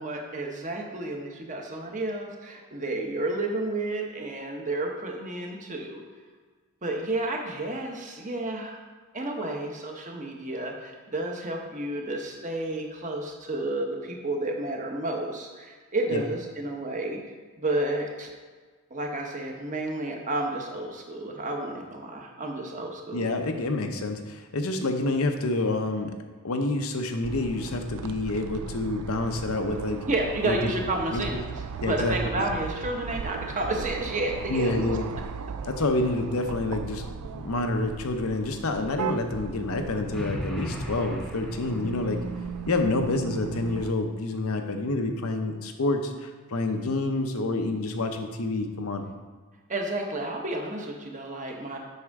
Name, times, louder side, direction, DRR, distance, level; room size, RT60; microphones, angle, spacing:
voice 1, 0.0-6.0 6.8-8.8 9.1-17.2 17.6-18.3 18.9-23.3 30.1-35.0 35.9-36.0 49.7-51.8, right 2 dB, 35° right, 1 dB, 1.0 m, -31 dB
voice 2, 23.1-26.2 26.4-30.0 30.4-30.6 31.1-31.2 31.8-32.4 34.5-35.1 35.7-37.0 37.3-42.2 42.7-49.1, left 2 dB, 70° left, 5 dB, 0.7 m, -28 dB
sound 1, 27.2-43.9, right 6 dB, 90° right, 0.4 m, -37 dB
sound 2, 40.1-42.2, equal, ahead, 0.7 m, -36 dB
7.9 x 6.3 x 3.6 m, 1.5 s
head